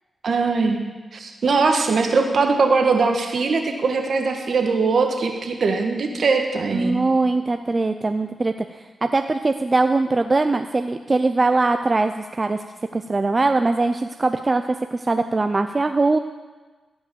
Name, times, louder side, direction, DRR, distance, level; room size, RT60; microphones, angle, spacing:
voice 1, 0.2-0.8 1.1-7.0, right 4 dB, 65° right, 4 dB, 1.5 m, -21 dB
voice 2, 6.7-12.6 12.9-14.6 14.9-16.2, right 3 dB, 35° right, 8 dB, 0.5 m, -21 dB
15.5 x 5.3 x 7.0 m, 1.3 s
cardioid pair, 60°, 0 cm